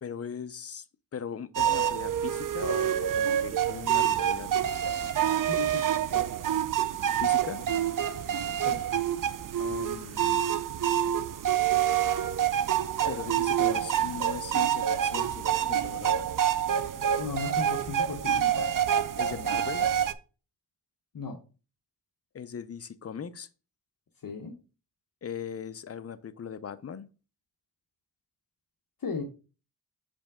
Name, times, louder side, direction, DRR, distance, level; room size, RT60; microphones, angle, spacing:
voice 1, 0.0-0.9 1.1-4.5 7.2-7.7 9.6-10.5 13.1-16.2 19.2-19.9 22.3-23.5 25.2-27.1, left 7 dB, 35° left, 0.5 m, -39 dB
sound 1, 1.5-20.1, right 9 dB, 50° right, 0.5 m, -27 dB
voice 2, 5.5-6.3 8.7-8.8 17.2-18.7 21.1-21.4 24.2-24.5 29.0-29.2, left 5 dB, 55° left, 0.9 m, -36 dB
6.2 x 5.1 x 3.5 m
wide cardioid pair, 100°, 41 cm